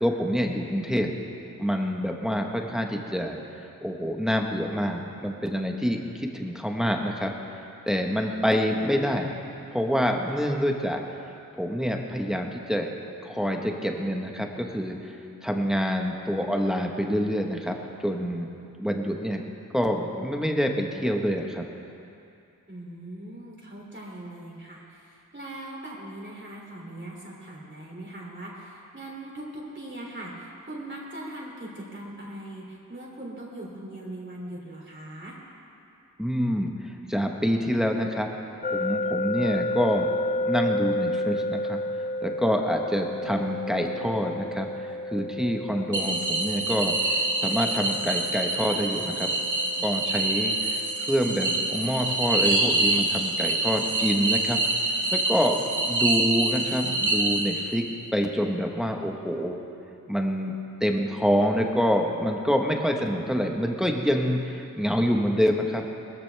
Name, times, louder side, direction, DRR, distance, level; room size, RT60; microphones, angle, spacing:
voice 1, 0.0-1.1 1.6-3.4 3.8-7.3 7.9-9.4 9.7-11.0 11.5-12.9 13.2-15.1 15.4-17.7 18.0-18.5 18.8-19.4 19.7-21.6 36.2-36.7 37.1-38.3 38.6-40.1 40.4-41.8 42.2-44.7 45.1-46.9 47.4-49.3 49.8-54.6 55.1-57.8 58.1-59.6 60.1-60.5 60.8-65.8, equal, ahead, 2 dB, 1.2 m, -26 dB
voice 2, 22.7-35.4, right 1 dB, 35° right, -4 dB, 2.9 m, -40 dB
sound 1, 38.6-51.5, left 1 dB, 25° left, 0.4 m, -32 dB
sound 2, 45.9-57.9, right 2 dB, 60° right, 1.8 m, -26 dB
21.5 x 14.0 x 3.4 m, 2.7 s
wide cardioid pair, 90°, 34 cm